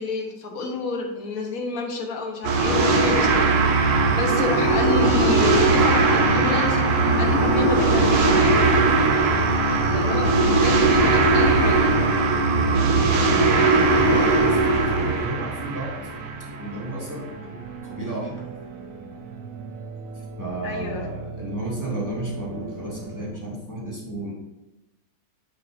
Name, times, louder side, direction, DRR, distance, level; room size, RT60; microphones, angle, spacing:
voice 1, 0.0-8.5 9.9-11.9 20.6-21.1, left 4 dB, 45° left, 1 dB, 1.6 m, -29 dB
sound 1, 2.4-16.8, right 4 dB, 90° right, 1.9 m, -21 dB
sound 2, 2.7-15.2, right 2 dB, 15° left, 1.5 m, -23 dB
sound 3, 3.8-23.3, right 3 dB, 55° right, 1.1 m, -38 dB
voice 2, 9.8-10.3 13.2-15.9 16.6-18.4 20.4-24.3, right 2 dB, 10° right, -5 dB, 2.4 m, -33 dB
9.2 x 8.0 x 2.8 m, 0.98 s
omnidirectional pair, 2.2 m